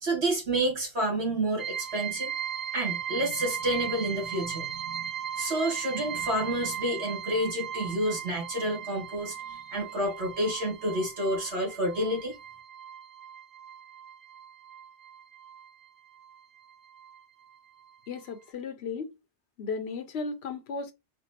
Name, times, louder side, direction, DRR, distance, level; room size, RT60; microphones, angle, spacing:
voice 1, 0.0-2.3 2.7-5.0 5.4-12.4, right 1 dB, 65° right, 2.0 m, -29 dB
sound 1, 1.6-15.9 16.1-17.2 17.5-17.6 18.1-18.2, right 9 dB, 45° right, 0.6 m, -38 dB
voice 2, 18.1-19.1 19.6-20.9, left 4 dB, 70° left, 0.9 m, -35 dB
4.4 x 2.2 x 2.9 m
omnidirectional pair, 1.2 m